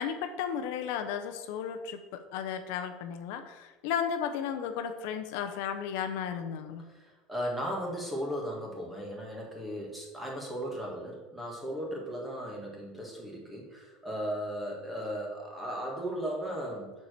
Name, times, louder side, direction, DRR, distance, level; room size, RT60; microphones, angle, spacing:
voice 1, 0.0-6.8, left 8 dB, 65° left, 7 dB, 0.7 m, -34 dB
voice 2, 6.8-16.9, equal, 5° right, -2 dB, 1.6 m, -36 dB
6.9 x 4.7 x 6.6 m, 1.2 s
cardioid pair, 170°, 0 cm